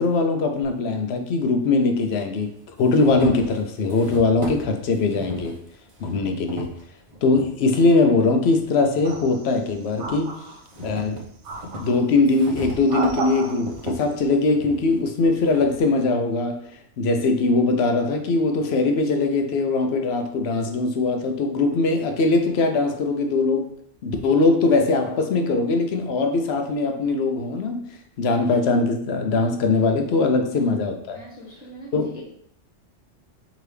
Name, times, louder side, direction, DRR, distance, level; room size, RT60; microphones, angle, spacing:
voice 1, 0.0-2.5 2.8-5.5 6.0-6.7 7.2-10.3 10.8-11.2 11.8-16.6 17.0-23.7 24.0-27.8 28.2-31.2 31.9-32.1, left 3 dB, 65° left, 5 dB, 0.8 m, -21 dB
sound 1, 0.6-0.7 1.8-1.9 2.4-7.5 8.0-9.2 9.7-15.8, equal, 30° right, 0.7 m, -38 dB
sound 2, 9.0-9.6 10.0-10.9 11.4-12.1 12.7-13.9, right 3 dB, 80° right, 0.9 m, -33 dB
voice 2, 31.1-32.2, right 1 dB, 10° right, -7 dB, 1.3 m, -41 dB
4.7 x 2.9 x 3.3 m, 0.67 s
omnidirectional pair, 1.2 m